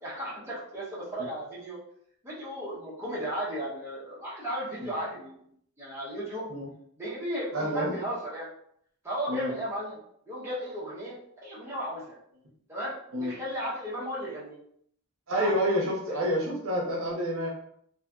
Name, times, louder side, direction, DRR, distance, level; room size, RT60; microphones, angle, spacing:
voice 1, 0.0-1.8 2.2-5.4 5.8-6.5 7.0-8.5 9.0-10.0 10.3-11.2 11.4-12.2 12.7-14.6 15.3-15.8, equal, 10° right, -8 dB, 0.7 m, -35 dB
voice 2, 7.5-7.9 9.3-9.5 13.1-13.3 15.3-17.5, equal, 60° right, -2 dB, 0.7 m, -28 dB
2.6 x 2.5 x 2.3 m, 0.67 s
head